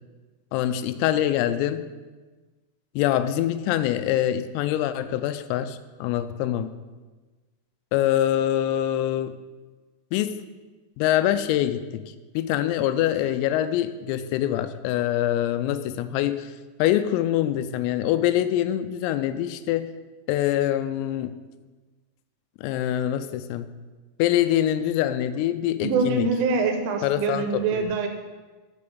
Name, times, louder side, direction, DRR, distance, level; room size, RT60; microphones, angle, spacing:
voice 1, 0.5-1.8 3.0-6.7 7.9-9.4 10.1-10.4 11.0-11.8 12.4-16.5 16.8-19.9 20.3-21.3 22.6-23.7 24.2-26.3 27.0-27.9, left 12 dB, 85° left, 12 dB, 3.2 m, -24 dB
voice 2, 25.8-28.1, right 4 dB, 80° right, 5 dB, 3.3 m, -24 dB
8.5 x 7.0 x 6.9 m, 1.3 s
omnidirectional pair, 6.0 m